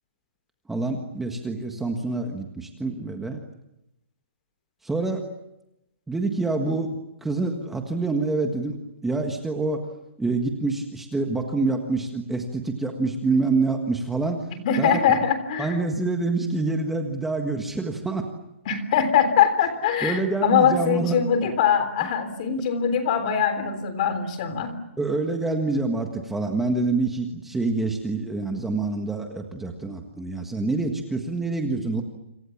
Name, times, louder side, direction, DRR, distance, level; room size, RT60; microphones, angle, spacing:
voice 1, 0.7-3.4 4.8-5.2 6.1-6.9 7.2-9.8 10.2-14.4 14.8-15.2 15.6-18.3 20.0-21.2 25.0-32.0, right 3 dB, 5° right, 3 dB, 1.6 m, -26 dB
voice 2, 14.7-15.8 18.7-24.7, left 7 dB, 35° left, 11 dB, 3.6 m, -22 dB
29.0 x 27.5 x 7.2 m, 0.87 s
hypercardioid pair, 170°, 7 cm